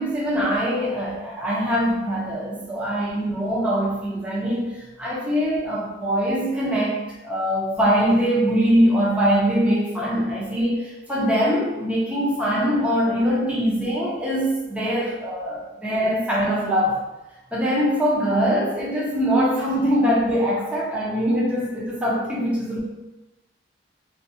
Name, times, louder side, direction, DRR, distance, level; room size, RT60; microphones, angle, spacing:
voice 1, 0.0-17.0 17.5-22.8, equal, 5° right, -7 dB, 0.5 m, -22 dB
2.8 x 2.4 x 2.7 m, 1.0 s
head